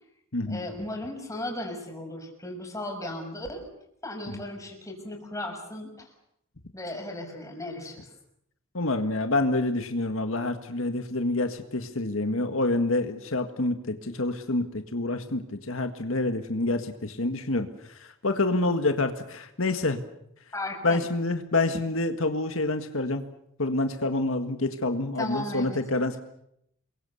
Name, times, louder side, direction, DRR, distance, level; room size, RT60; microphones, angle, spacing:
voice 1, 0.5-3.6 4.0-6.1 6.7-8.1 20.5-21.0 25.2-25.8, left 1 dB, 15° left, 2 dB, 6.1 m, -36 dB
voice 2, 8.7-20.0 20.8-23.2 23.6-26.2, left 2 dB, 80° left, 7 dB, 1.8 m, -27 dB
28.5 x 23.0 x 7.0 m, 0.75 s
head